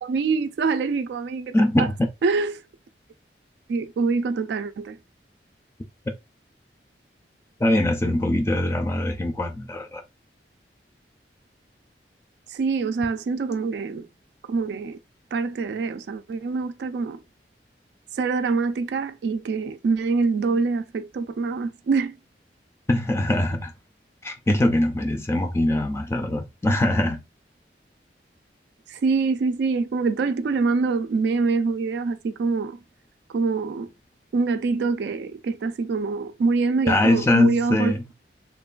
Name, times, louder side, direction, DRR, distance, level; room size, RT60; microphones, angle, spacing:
voice 1, 0.0-1.9 2.2-2.6 3.7-5.0 12.5-14.1 14.5-15.0 15.3-17.2 18.2-22.2 28.9-32.8 33.3-33.9 34.3-37.9, right 4 dB, 75° right, 0.3 m, -25 dB
voice 2, 1.5-2.1 7.6-10.0 22.9-23.7 24.2-27.2 36.9-38.0, left 1 dB, 15° left, 0.3 m, -22 dB
3.1 x 2.2 x 2.3 m
head